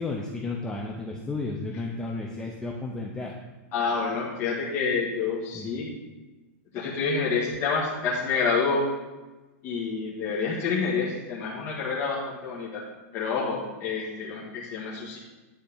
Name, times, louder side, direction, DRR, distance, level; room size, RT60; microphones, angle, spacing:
voice 1, 0.0-3.4 5.5-5.7, left 3 dB, 10° left, -1 dB, 0.6 m, -33 dB
voice 2, 3.7-5.9 6.7-8.8 9.6-12.8 13.1-15.2, left 5 dB, 30° left, -7 dB, 1.6 m, -28 dB
9.5 x 4.3 x 7.0 m, 1.2 s
supercardioid pair, 160°, 8 cm